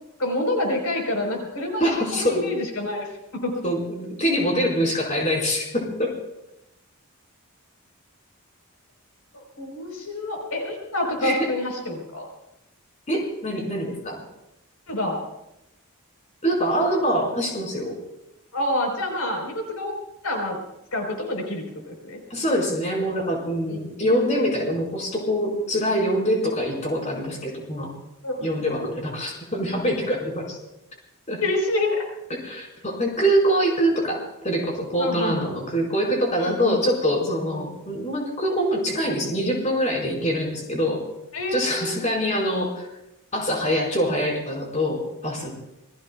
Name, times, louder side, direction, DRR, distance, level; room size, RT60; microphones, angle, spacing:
voice 1, 0.2-3.6 9.3-12.3 14.9-15.2 18.5-19.9 20.2-20.6 20.9-22.2 23.7-23.8 28.2-28.5 31.4-32.0 35.0-35.5 36.4-36.8 37.5-37.7 41.3-42.0, left 1 dB, 80° left, 2 dB, 4.3 m, -27 dB
voice 2, 1.8-2.4 3.6-6.1 11.2-11.5 13.1-14.2 16.4-18.0 22.3-27.9 28.4-30.6 31.3-31.4 32.4-41.0 41.5-42.9 43.3-45.5, equal, 35° left, -1 dB, 4.9 m, -24 dB
27.5 x 21.5 x 2.4 m, 0.87 s
head